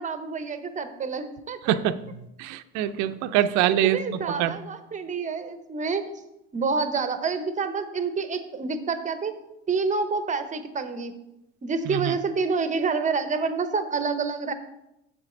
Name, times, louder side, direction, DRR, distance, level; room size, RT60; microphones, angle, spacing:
voice 1, 0.0-1.7 3.7-6.2 6.5-9.3 9.7-11.1 11.6-14.5, right 4 dB, 25° right, 10 dB, 0.8 m, -28 dB
voice 2, 1.7-2.0 2.4-4.6 11.9-12.1, right 12 dB, 65° right, 12 dB, 0.6 m, -24 dB
8.2 x 6.8 x 3.9 m, 0.87 s
supercardioid pair, 105°, 30 cm